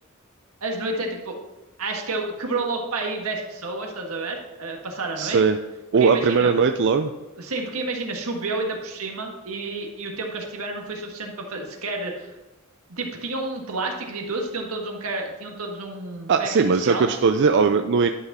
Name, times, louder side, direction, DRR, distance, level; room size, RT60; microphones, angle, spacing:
voice 1, 0.6-1.4 1.8-5.4 6.0-6.5 7.4-12.3 12.9-17.1, right 2 dB, 85° right, 1 dB, 1.6 m, -30 dB
voice 2, 5.2-5.6 5.9-7.1 16.3-18.1, right 5 dB, 55° right, 7 dB, 0.4 m, -19 dB
11.0 x 6.0 x 4.2 m, 1.1 s
head